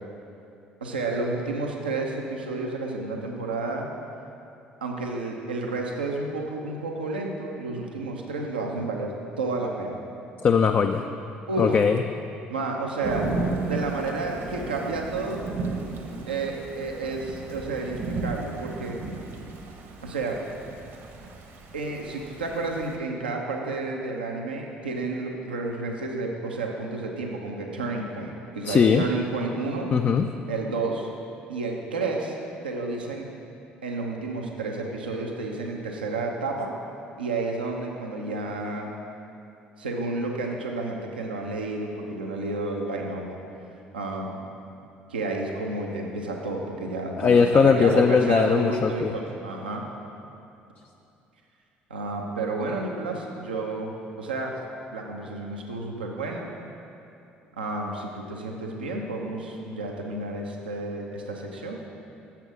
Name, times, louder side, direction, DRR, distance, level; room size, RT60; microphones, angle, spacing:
voice 1, 0.8-3.9 4.8-10.0 11.5-11.8 12.5-13.3 13.6-15.5 16.3-19.0 20.0-20.4 21.7-29.9 30.5-31.1 31.5-32.4 32.6-33.2 33.8-36.7 37.2-38.9 39.8-43.4 43.9-44.4 45.1-49.9 51.9-54.5 54.9-56.5 57.6-62.0, right 3 dB, 90° right, 0 dB, 0.7 m, -31 dB
voice 2, 10.4-11.0 11.6-12.0 28.6-29.0 29.9-30.3 47.2-49.1, left 6 dB, 35° left, 6 dB, 0.3 m, -20 dB
Thunder / Rain, 13.0-23.0, right 3 dB, 60° right, 1.0 m, -34 dB
7.0 x 5.9 x 6.2 m, 2.7 s
hypercardioid pair, 55°, 5 cm